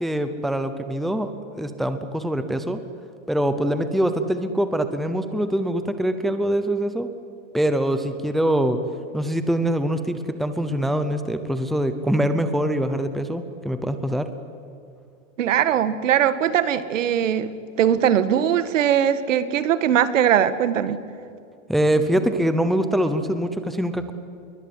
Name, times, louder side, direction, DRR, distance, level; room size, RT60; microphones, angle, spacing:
voice 1, 0.0-2.8 3.3-7.1 7.5-8.8 9.1-14.3 21.7-24.1, right 1 dB, ahead, 9 dB, 0.7 m, -24 dB
voice 2, 15.4-21.0, right 9 dB, 80° right, 12 dB, 2.2 m, -20 dB
27.5 x 22.5 x 9.4 m, 2.5 s
supercardioid pair, 165°, 37 cm